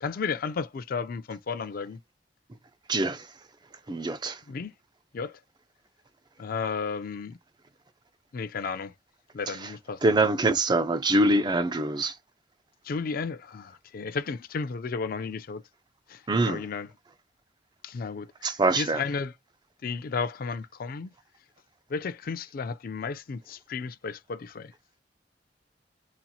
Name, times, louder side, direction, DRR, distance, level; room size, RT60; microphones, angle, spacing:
voice 1, 0.0-2.0 4.5-4.7 5.1-5.4 6.4-7.4 8.3-8.9 9.3-10.0 12.9-15.6 16.1-16.9 17.8-19.3 19.8-21.1 21.9-24.7, left 5 dB, 55° left, 0.4 m, -33 dB
voice 2, 2.9-3.2 3.9-4.4 10.0-12.1 16.3-16.6 18.4-19.0, right 2 dB, 25° right, 0.4 m, -24 dB
4.0 x 2.8 x 2.3 m
head